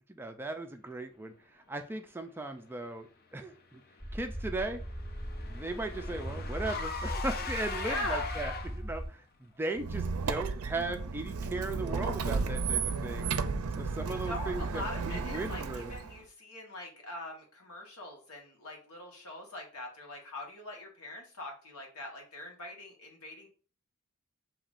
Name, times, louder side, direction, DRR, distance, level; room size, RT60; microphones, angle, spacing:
voice 1, 0.1-1.3 1.7-3.8 4.1-4.8 5.5-13.3 13.8-15.9, right 2 dB, 10° right, 6 dB, 0.4 m, -37 dB
Car / Engine, 4.0-9.0, left 5 dB, 45° left, 0.5 m, -40 dB
sound 1, 4.0-9.1, equal, 15° left, 1.6 m, -39 dB
voice 2, 7.8-8.3 14.1-23.5, left 2 dB, 75° left, 1 dB, 1.4 m, -42 dB
Squeak, 9.8-16.2, right 4 dB, 70° right, 0.5 m, -33 dB
7.0 x 2.9 x 2.5 m, 0.40 s
head